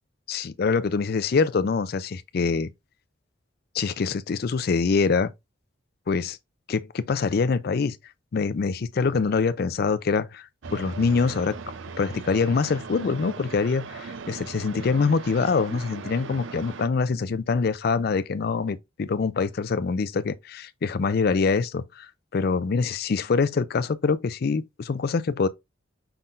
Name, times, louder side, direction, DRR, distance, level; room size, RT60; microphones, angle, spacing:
voice 1, 0.3-2.7 3.7-5.3 6.1-6.4 6.7-8.0 8.3-11.6 12.0-25.5, left 4 dB, 50° left, 0.4 m, -25 dB
sound 1, 10.6-16.9, right 4 dB, 70° right, 0.6 m, -39 dB
5.7 x 3.7 x 2.5 m
head